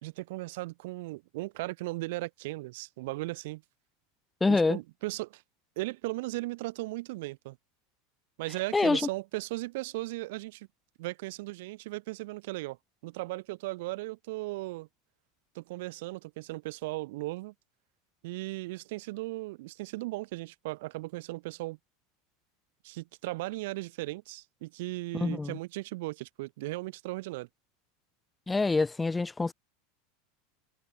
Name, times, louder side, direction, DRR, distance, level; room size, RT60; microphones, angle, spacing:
voice 1, 0.0-3.6 4.5-5.4 5.8-7.6 8.4-10.7 11.0-12.8 13.0-14.9 15.5-17.5 18.2-21.8 22.8-27.5, right 21 dB, 70° right, 2.3 m, -37 dB
voice 2, 4.4-4.8 8.7-9.0 25.1-25.6 28.5-29.5, left 3 dB, 15° left, 1.6 m, -26 dB
hypercardioid pair, 105°, 0 cm